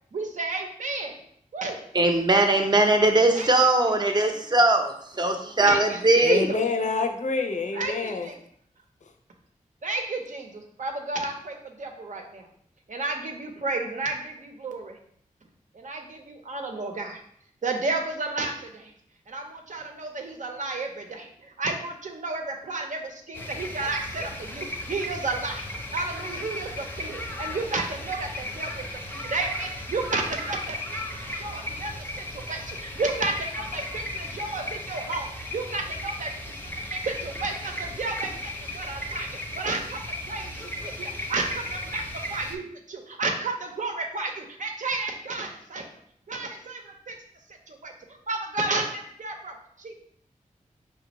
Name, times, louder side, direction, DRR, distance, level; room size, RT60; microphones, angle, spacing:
voice 1, 0.1-1.2 1.5-1.8 3.3-3.5 3.9-4.2 5.6-6.6 7.7-8.4 9.8-10.5 10.8-12.5 12.9-15.0 15.7-17.2 17.6-18.9 19.3-25.7 25.9-28.9 29.1-36.6 36.9-45.9 46.3-47.2 47.7-47.9 48.3-49.9, right 3 dB, 65° right, 0.7 m, -32 dB
voice 2, 1.9-4.9 5.2-6.5, right 2 dB, 30° right, 0.6 m, -20 dB
voice 3, 6.2-8.3, left 4 dB, 60° left, 0.5 m, -27 dB
sound 1, 23.3-42.6, left 1 dB, 15° left, 0.6 m, -35 dB
5.2 x 2.3 x 3.0 m
wide cardioid pair, 65°, 14 cm